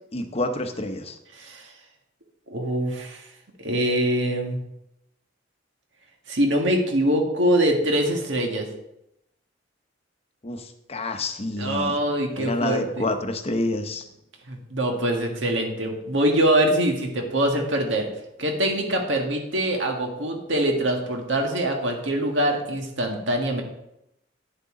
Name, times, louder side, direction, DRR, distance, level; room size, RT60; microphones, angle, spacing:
voice 1, 0.1-1.2 10.4-11.9 12.4-14.1, left 2 dB, 35° left, 7 dB, 0.8 m, -28 dB
voice 2, 1.3-1.7 2.5-3.2 3.6-4.6 6.3-8.7 11.6-13.0 14.5-18.1 18.4-23.6, right 1 dB, 75° right, 2 dB, 1.7 m, -24 dB
9.5 x 7.9 x 3.8 m, 0.84 s
head